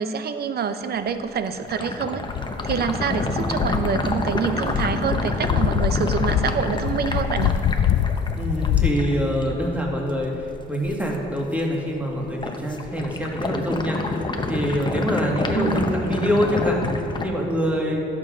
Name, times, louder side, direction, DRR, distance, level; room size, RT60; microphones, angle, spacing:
voice 1, 0.0-2.2 2.6-7.6 15.5-15.9, right 6 dB, 55° right, 10 dB, 0.7 m, -26 dB
sound 1, 0.8-11.2 11.5-12.0 12.2-17.3, left 2 dB, 25° left, 0.9 m, -28 dB
sound 2, 2.3-8.9, left 10 dB, 65° left, 0.4 m, -24 dB
voice 2, 8.3-16.8 17.2-18.1, equal, 5° right, -1 dB, 1.9 m, -25 dB
10.5 x 7.5 x 5.0 m, 2.8 s
cardioid pair, 90°, 20 cm